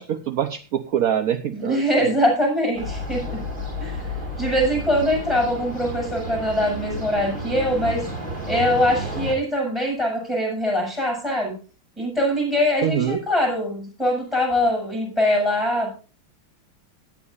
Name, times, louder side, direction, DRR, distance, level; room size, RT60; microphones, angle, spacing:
voice 1, 0.0-2.2 12.8-13.2, right 9 dB, 60° right, 9 dB, 0.9 m, -24 dB
voice 2, 1.5-3.4 3.8-4.1 4.4-8.0 8.5-11.6 12.0-16.0, left 1 dB, ahead, 1 dB, 7.8 m, -22 dB
sound 1, 2.8-9.3, equal, 20° right, 3.4 m, -31 dB
17.5 x 10.5 x 2.6 m, 0.35 s
omnidirectional pair, 2.3 m